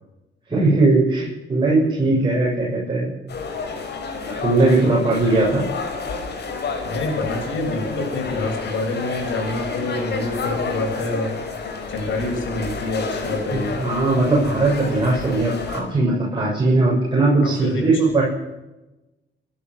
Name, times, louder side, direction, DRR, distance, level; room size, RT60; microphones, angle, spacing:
voice 1, 0.5-3.1 4.3-5.6 13.5-18.2, right 2 dB, 25° right, -4 dB, 7.7 m, -19 dB
sound 1, 3.3-15.8, left 4 dB, 55° left, 5.0 m, -30 dB
voice 2, 6.8-11.3 11.9-13.8 17.4-18.0, left 2 dB, 75° left, 1 dB, 7.5 m, -26 dB
27.0 x 12.0 x 8.3 m, 1.0 s
cardioid pair, 90°, 20 cm